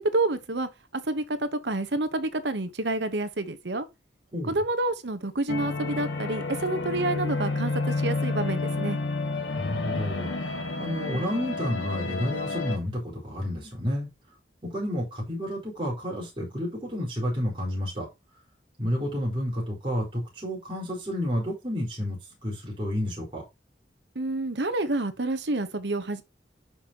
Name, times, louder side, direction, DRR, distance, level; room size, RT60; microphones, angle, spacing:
voice 1, 0.0-3.9 4.5-9.0 24.1-26.2, right 2 dB, 75° right, 1.1 m, -28 dB
sound 1, 5.5-12.8, left 3 dB, 85° left, 1.7 m, -30 dB
voice 2, 9.6-14.1 14.6-18.1 18.8-23.4, equal, 30° right, 4.4 m, -30 dB
11.0 x 5.5 x 2.9 m
head